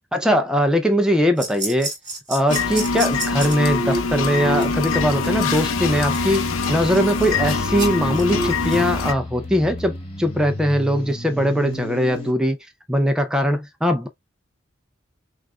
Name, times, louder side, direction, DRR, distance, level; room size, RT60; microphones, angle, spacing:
voice 1, 0.1-1.9 2.3-12.6 12.9-14.1, equal, 5° right, 0.4 m, -21 dB
sound 1, 1.4-8.9, right 1 dB, 20° right, 2.6 m, -30 dB
sound 2, 2.5-9.1, left 4 dB, 85° left, 0.7 m, -24 dB
sound 3, 4.4-12.3, left 1 dB, 30° left, 1.4 m, -33 dB
6.3 x 2.4 x 2.2 m
head